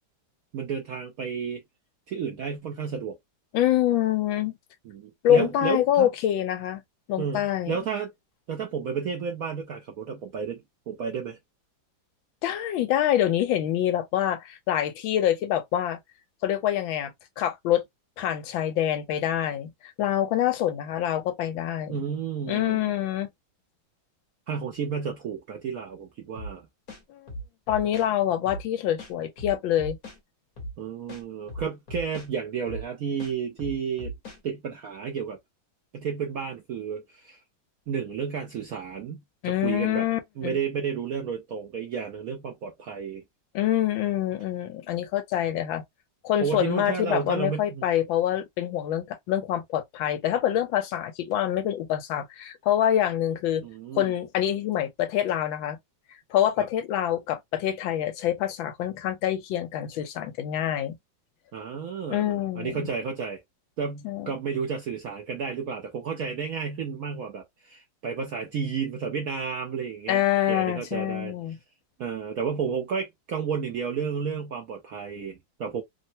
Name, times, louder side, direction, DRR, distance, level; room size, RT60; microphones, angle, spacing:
voice 1, 0.5-1.6 2.1-3.2 4.8-6.1 7.2-8.1 8.5-11.4 21.9-22.9 24.5-26.7 30.8-34.1 34.4-35.4 35.9-37.4 37.9-40.1 40.4-43.2 46.4-47.9 53.6-54.1 56.6-56.7 61.5-63.4 63.8-70.2 70.5-71.3 72.0-75.8, right 6 dB, 70° right, 0.8 m, -32 dB
voice 2, 3.5-4.5 5.2-6.8 7.1-7.8 12.4-16.0 16.4-17.8 18.2-22.0 22.5-23.3 27.1-27.3 27.7-30.0 39.4-40.6 43.5-45.8 46.2-53.6 53.9-55.8 56.3-61.0 62.1-62.9 64.0-64.3 70.1-71.6, left 11 dB, 80° left, 1.4 m, -26 dB
sound 1, 26.4-26.5 26.9-28.1 28.5-28.6 29.0-30.2 30.6-30.7 31.1-32.3 32.7-32.9 33.2-34.4, equal, 50° left, 1.5 m, -38 dB
3.5 x 2.1 x 2.7 m
omnidirectional pair, 2.2 m